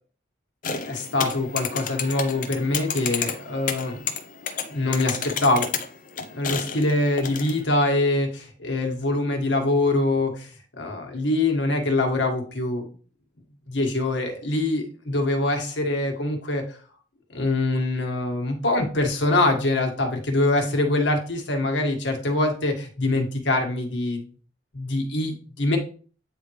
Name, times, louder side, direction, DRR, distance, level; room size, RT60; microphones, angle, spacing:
sound 1, 0.6-7.6, left 6 dB, 45° left, 0.7 m, -31 dB
voice 1, 0.9-4.0 4.7-5.7 6.3-10.5 10.8-12.9 13.7-16.8 17.3-24.2 24.7-25.8, left 2 dB, 85° left, 2 dB, 1.6 m, -24 dB
9.0 x 3.6 x 3.2 m, 0.39 s
head